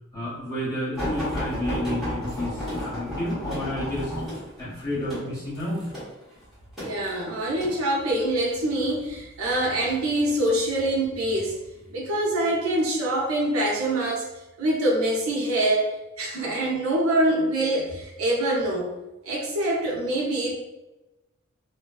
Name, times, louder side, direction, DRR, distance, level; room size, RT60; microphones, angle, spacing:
voice 1, 0.1-4.1 4.6-5.8, left 1 dB, 15° left, -10 dB, 1.2 m, -31 dB
sound 1, 0.9-7.8 8.5-9.0 9.9-10.6 11.3-11.5 11.9-12.0, left 1 dB, ahead, 1.1 m, -32 dB
voice 2, 6.8-11.5 11.9-14.3 14.6-18.9 19.2-20.5, right 1 dB, 90° right, -3 dB, 0.6 m, -25 dB
2.5 x 2.2 x 2.3 m, 1.0 s
head